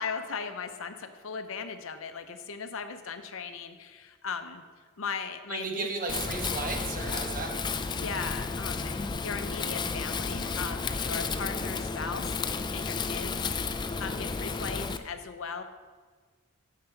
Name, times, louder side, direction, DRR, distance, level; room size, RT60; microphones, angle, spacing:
voice 1, 0.0-4.6 5.0-5.9 7.9-13.4 14.0-15.6, left 5 dB, 65° left, 8 dB, 0.7 m, -37 dB
voice 2, 5.5-7.7, right 3 dB, 40° right, 2 dB, 1.2 m, -34 dB
Wind, 6.1-15.0, left 4 dB, 20° left, 0.3 m, -32 dB
10.5 x 6.6 x 4.5 m, 1.5 s
head